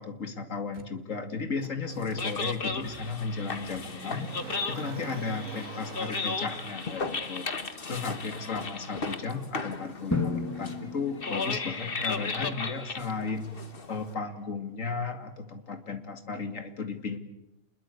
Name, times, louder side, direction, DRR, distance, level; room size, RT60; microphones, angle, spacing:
voice 1, 0.0-4.3 4.7-7.5 7.9-13.6 13.9-17.2, left 4 dB, 65° left, 8 dB, 2.7 m, -34 dB
Motor vehicle (road), 0.7-0.9 1.6-14.5 14.8-14.9, right 4 dB, 65° right, 2.4 m, -48 dB
sound 1, 1.9-14.1, left 4 dB, 40° left, 1.6 m, -35 dB
Drum, 10.1-12.0, left 3 dB, 10° left, 1.5 m, -33 dB
28.0 x 22.0 x 8.3 m, 0.87 s
omnidirectional pair, 1.5 m